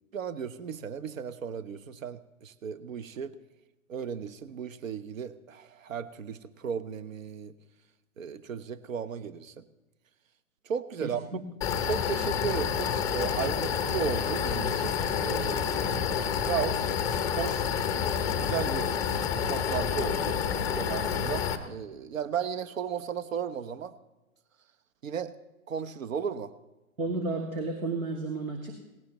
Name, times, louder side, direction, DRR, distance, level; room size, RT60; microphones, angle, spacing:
voice 1, 0.1-3.3 3.9-7.5 8.2-9.6 10.7-11.4 11.8-14.9 15.2-16.8 17.3-17.7 18.4-18.9 19.5-23.9 25.0-25.3 25.7-26.5, right 7 dB, 65° right, 13 dB, 1.0 m, -35 dB
voice 2, 11.0-11.4 27.0-28.7, right 3 dB, 85° right, 2 dB, 2.2 m, -32 dB
sound 1, 11.6-21.6, left 7 dB, 10° left, 0.5 m, -29 dB
18.5 x 17.0 x 3.0 m, 1.0 s
figure-of-eight pair, 125°, 42 cm